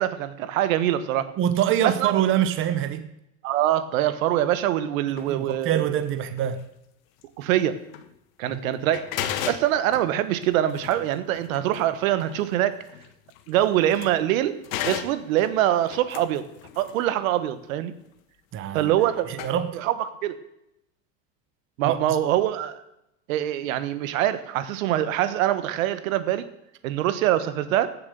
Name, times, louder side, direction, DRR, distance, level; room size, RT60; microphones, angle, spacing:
voice 1, 0.0-1.3 1.8-2.1 3.4-5.9 7.4-7.8 8.4-9.1 9.4-12.8 13.5-14.6 14.8-16.4 16.8-17.9 18.7-19.4 19.7-19.9 20.2-20.4 21.8-22.8 23.3-26.5 26.8-27.9, right 12 dB, 80° right, 1.3 m, -24 dB
voice 2, 1.4-3.1 5.3-6.6 8.5-8.6 18.5-18.9 19.3-19.8 21.8-22.0, right 10 dB, 30° right, 0.9 m, -24 dB
sound 1, 5.1-5.3 6.4-6.6 7.2-7.3 7.9-8.1 8.5-8.6 8.8-14.3 14.6-17.1 19.0-19.1 19.3-19.5, left 10 dB, 80° left, 1.4 m, -36 dB
16.0 x 7.4 x 6.9 m
supercardioid pair, 145°, 40 cm